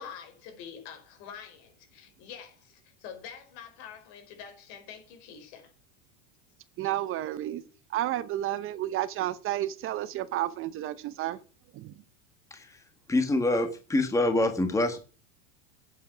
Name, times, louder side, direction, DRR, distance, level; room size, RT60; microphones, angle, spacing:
voice 1, 0.0-5.7, left 7 dB, 65° left, 5.1 m, -46 dB
voice 2, 6.8-7.6 7.9-11.4 11.7-11.9, right 13 dB, 35° right, 0.8 m, -31 dB
voice 3, 12.5-12.8 13.1-15.0, left 2 dB, 10° left, 1.7 m, -26 dB
11.5 x 8.1 x 6.0 m
supercardioid pair, 135°, 35 cm